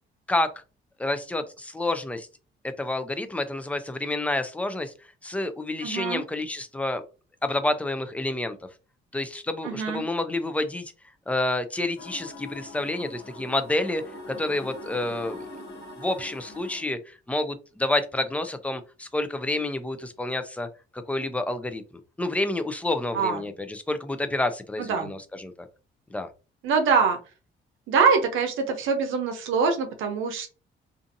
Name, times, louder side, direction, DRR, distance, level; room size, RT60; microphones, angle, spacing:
voice 1, 1.0-2.3 2.6-4.9 5.2-7.0 7.4-8.6 9.1-10.9 11.3-15.5 16.0-20.7 20.9-21.8 22.2-25.7 26.1-26.3, left 2 dB, 5° left, 9 dB, 0.4 m, -29 dB
voice 2, 5.8-6.2 9.6-10.1 23.1-23.4 24.8-25.1 26.6-27.2 27.9-30.5, right 5 dB, 80° right, 5 dB, 0.7 m, -24 dB
sound 1, 12.0-16.8, left 1 dB, 65° left, 1.2 m, -42 dB
2.6 x 2.5 x 2.5 m, 0.33 s
cardioid pair, 90°, 20 cm